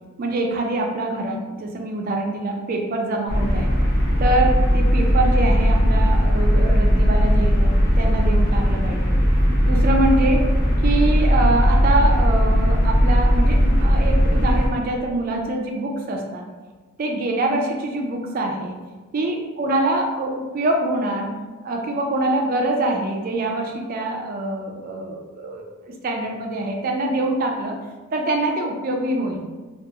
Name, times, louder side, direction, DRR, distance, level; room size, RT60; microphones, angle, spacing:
voice 1, 0.2-3.7 4.2-9.2 9.6-10.5 10.8-16.4 17.0-18.8 19.1-21.3 21.6-27.8 28.1-29.4, right 2 dB, 40° right, 2 dB, 0.3 m, -24 dB
sound 1, 3.3-14.7, equal, 40° left, 0.5 m, -18 dB
2.3 x 2.3 x 2.8 m, 1.3 s
head